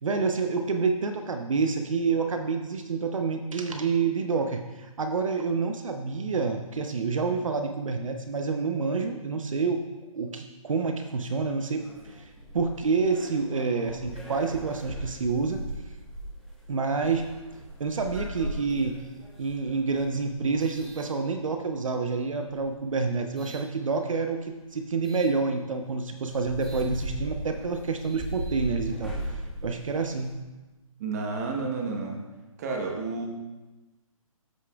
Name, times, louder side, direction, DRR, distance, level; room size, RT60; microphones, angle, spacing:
voice 1, 0.0-9.8 10.1-15.6 16.7-17.3 17.8-19.0 19.4-29.1 29.6-30.4, right 4 dB, 65° right, 5 dB, 0.8 m, -28 dB
sound 1, 11.7-21.8 22.4-23.7 25.0-25.3 25.8-25.9 26.2-30.4, right 1 dB, ahead, 1.2 m, -39 dB
voice 2, 31.0-32.2 32.6-33.3, right 4 dB, 30° right, 2 dB, 1.2 m, -31 dB
13.0 x 6.6 x 2.4 m, 1.1 s
hypercardioid pair, 160°, 18 cm